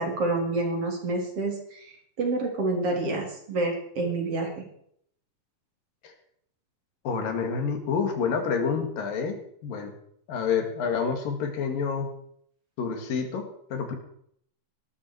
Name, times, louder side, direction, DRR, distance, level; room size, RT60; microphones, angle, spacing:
voice 1, 0.0-1.9 2.2-4.6, right 2 dB, 45° right, 1 dB, 4.1 m, -28 dB
voice 2, 7.1-9.9 10.3-12.1 12.8-13.9, left 6 dB, 85° left, 5 dB, 3.9 m, -28 dB
18.5 x 12.5 x 4.7 m, 0.67 s
omnidirectional pair, 3.9 m